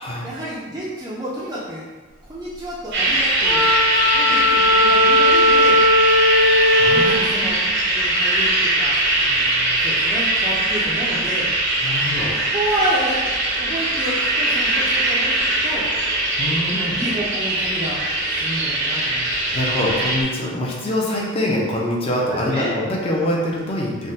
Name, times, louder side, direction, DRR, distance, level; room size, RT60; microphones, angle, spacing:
voice 1, 0.2-1.9 2.3-3.7 4.1-5.8 6.8-7.5 7.9-11.5 12.5-13.2 13.6-15.4 15.6-15.9 16.7-18.0 18.3-19.6 20.5-20.6 22.3-22.8, right 1 dB, 20° right, -9 dB, 0.4 m, -29 dB
sound 1, 2.9-20.2, right 1 dB, 60° right, 0.6 m, -21 dB
Wind instrument woodwind instrument, 3.4-7.2, left 1 dB, 55° left, 1.2 m, -16 dB
voice 2, 6.4-7.5 11.8-12.3 16.4-17.0 19.5-24.1, left 1 dB, 30° left, -3 dB, 0.5 m, -24 dB
3.5 x 2.1 x 2.7 m, 1.3 s
head